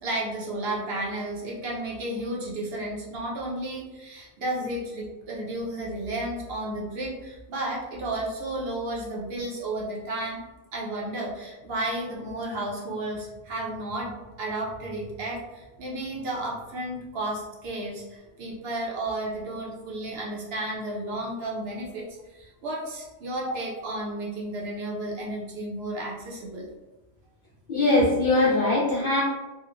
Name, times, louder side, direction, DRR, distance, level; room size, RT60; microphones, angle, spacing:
voice 1, 0.0-10.4 10.7-22.0 22.3-26.7, right 1 dB, 65° right, -3 dB, 0.7 m, -32 dB
voice 2, 27.7-29.2, left 2 dB, 55° left, -6 dB, 0.5 m, -21 dB
2.9 x 2.0 x 2.4 m, 1.1 s
omnidirectional pair, 1.3 m